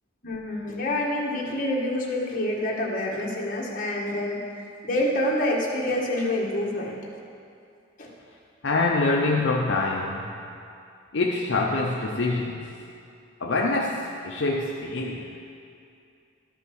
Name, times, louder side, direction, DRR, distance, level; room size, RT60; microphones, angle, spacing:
voice 1, 0.2-4.4 4.8-6.9 8.0-8.1, left 1 dB, 40° left, -3 dB, 1.6 m, -27 dB
voice 2, 8.6-10.4 11.1-12.7 13.4-15.4, left 3 dB, 65° left, -1 dB, 0.7 m, -25 dB
12.5 x 5.7 x 6.2 m, 2.5 s
head